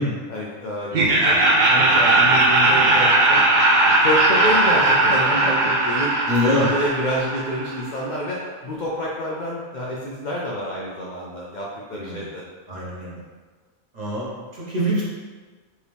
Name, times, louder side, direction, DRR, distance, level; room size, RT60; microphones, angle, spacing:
voice 1, 0.3-1.4 1.7-3.4 3.8-6.3 6.5-12.4, left 1 dB, 55° left, -4 dB, 0.5 m, -28 dB
Laughter, 0.9-7.9, right 2 dB, 55° right, 0.5 m, -18 dB
voice 2, 6.3-6.7 11.9-12.2 12.7-13.2 13.9-15.0, left 1 dB, 35° right, -8 dB, 1.1 m, -24 dB
4.5 x 2.9 x 3.4 m, 1.4 s
omnidirectional pair, 1.4 m